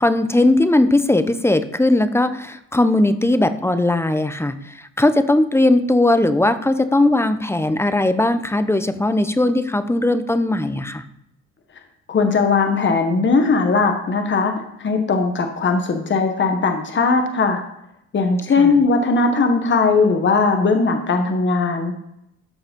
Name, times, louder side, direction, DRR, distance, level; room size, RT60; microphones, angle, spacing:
voice 1, 0.0-11.0 18.6-18.7, left 2 dB, 10° left, 11 dB, 0.8 m, -18 dB
voice 2, 12.1-14.5 14.8-17.6 18.1-21.9, left 4 dB, 40° left, 5 dB, 1.3 m, -18 dB
13.5 x 4.7 x 5.3 m, 0.81 s
cardioid pair, 90°, 30 cm